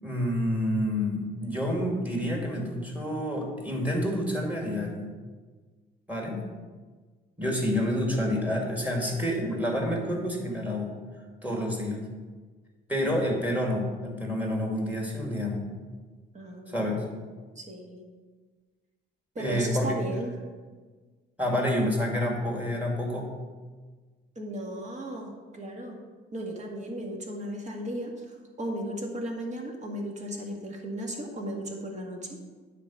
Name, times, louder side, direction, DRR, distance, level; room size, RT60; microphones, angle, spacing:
voice 1, 0.0-5.1 6.1-6.4 7.4-10.9 11.4-12.0 12.9-15.6 16.7-17.0 19.4-20.0 21.4-23.3, left 1 dB, 5° right, 0 dB, 2.5 m, -28 dB
voice 2, 16.3-16.9 17.6-18.1 19.4-20.3 24.4-26.0 26.3-32.4, right 1 dB, 35° right, 0 dB, 2.0 m, -35 dB
9.6 x 4.2 x 7.3 m, 1.4 s
cardioid pair, 90°, 20 cm